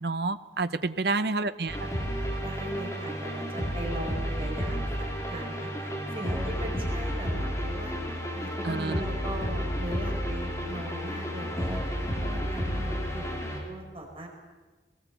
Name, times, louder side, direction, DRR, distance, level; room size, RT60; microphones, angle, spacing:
voice 1, 0.0-1.8 8.6-9.0, right 3 dB, 60° right, 12 dB, 0.8 m, -29 dB
sound 1, 1.7-13.6, equal, 15° left, 4.0 m, -32 dB
voice 2, 2.4-7.9 8.3-11.8 12.2-14.3, right 1 dB, 30° right, 1 dB, 4.3 m, -39 dB
sound 2, 6.0-7.0 8.3-10.0 11.3-12.3, equal, 5° right, 2.5 m, -43 dB
21.0 x 18.5 x 8.1 m, 1.3 s
head